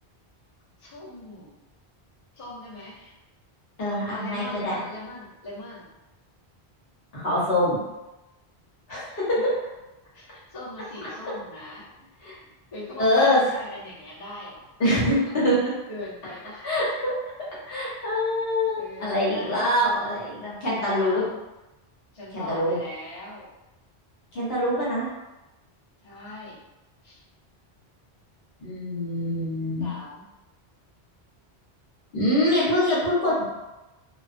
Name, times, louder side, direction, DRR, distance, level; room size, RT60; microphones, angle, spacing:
voice 1, 0.8-1.5 2.3-3.1 4.1-5.8 9.4-9.5 10.1-11.9 12.7-14.7 15.3-15.4 15.9-16.7 18.8-19.8 20.9-21.3 22.1-23.5 26.0-26.6 27.0-27.2 29.8-30.2, left 1 dB, 40° left, -9 dB, 0.7 m, -40 dB
voice 2, 3.8-4.8 7.1-7.8 8.9-9.4 12.2-12.3 13.0-13.4 14.8-15.7 16.6-17.1 17.7-21.2 22.3-22.8 24.3-25.1 28.6-29.9 32.1-33.4, left 1 dB, 65° left, -8 dB, 1.0 m, -24 dB
2.3 x 2.2 x 2.4 m, 1.0 s
omnidirectional pair, 1.1 m